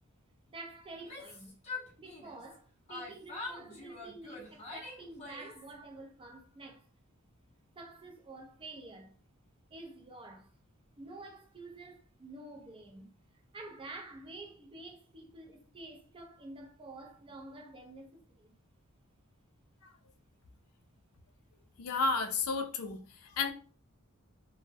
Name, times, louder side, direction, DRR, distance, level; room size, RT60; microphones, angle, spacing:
voice 1, 0.5-1.6 2.0-6.9 7.8-9.1 9.7-10.5 11.0-18.6, right 2 dB, 25° right, 0.4 m, -49 dB
Yell, 0.9-2.6 2.9-5.7, left 3 dB, 30° left, 0.6 m, -44 dB
voice 2, 21.8-23.5, left 4 dB, 80° left, 0.4 m, -32 dB
2.0 x 2.0 x 3.3 m
head